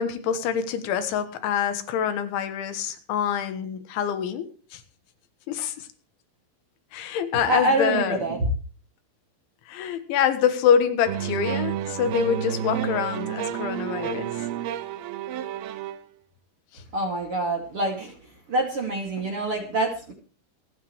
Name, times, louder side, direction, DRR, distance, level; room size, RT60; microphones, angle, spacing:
voice 1, 0.0-4.8 5.5-5.9 6.9-8.2 9.7-14.3, left 8 dB, 80° left, 10 dB, 3.8 m, -25 dB
voice 2, 7.3-8.5 16.9-20.1, right 1 dB, 40° right, 3 dB, 2.4 m, -26 dB
sound 1, 11.1-16.0, right 10 dB, 70° right, 2.6 m, -30 dB
26.5 x 9.3 x 3.2 m, 0.37 s
omnidirectional pair, 5.4 m